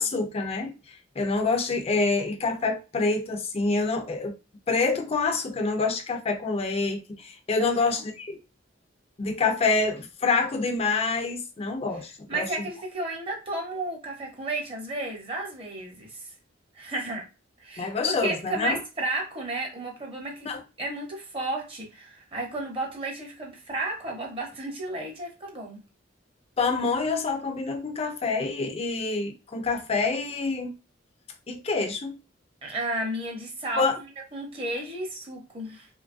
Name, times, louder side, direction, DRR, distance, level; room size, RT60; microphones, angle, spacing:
voice 1, 0.0-4.4 4.7-8.4 9.2-12.5 17.8-18.8 20.5-20.6 26.6-30.7 31.5-32.2 33.8-34.0, left 4 dB, 30° left, 0.4 m, -27 dB
voice 2, 12.3-16.3 16.7-17.3 17.6-20.5 20.8-25.8 32.6-35.9, right 2 dB, 30° right, 0.7 m, -33 dB
2.9 x 2.2 x 2.4 m
head